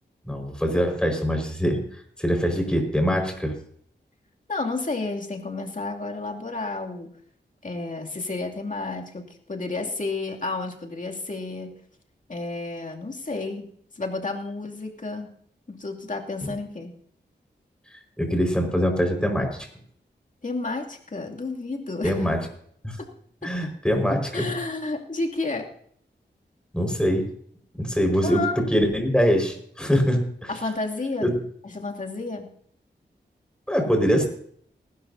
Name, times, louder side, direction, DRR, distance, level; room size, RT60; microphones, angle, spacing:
voice 1, 0.3-1.8 2.2-3.5 16.4-16.5 18.2-19.7 22.0-22.4 22.8-23.0 23.4-24.5 26.7-27.3 27.8-28.4 28.7-30.5 31.2-31.3 33.7-34.3, equal, 5° left, 3 dB, 5.0 m, -23 dB
voice 2, 4.5-7.1 7.6-11.8 12.3-15.3 15.7-16.9 20.4-22.3 23.0-23.1 23.4-23.5 24.3-25.7 28.2-28.6 30.5-31.3 31.6-32.5, left 3 dB, 45° left, 1 dB, 2.7 m, -31 dB
20.0 x 12.0 x 2.8 m, 0.62 s
cardioid pair, 45°, 19 cm